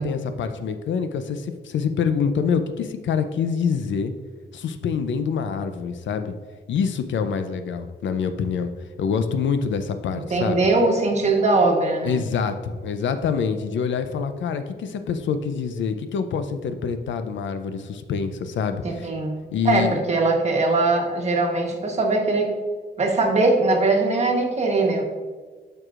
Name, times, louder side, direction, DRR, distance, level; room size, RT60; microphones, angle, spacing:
voice 1, 0.0-4.1 4.5-6.3 6.7-8.7 9.0-10.7 12.0-19.1 19.5-20.0, left 6 dB, 90° left, 9 dB, 0.5 m, -26 dB
voice 2, 10.1-12.2 18.8-22.6 23.0-25.0, right 2 dB, 35° right, 1 dB, 1.1 m, -21 dB
12.5 x 4.8 x 2.5 m, 1.5 s
wide cardioid pair, 165°, 19 cm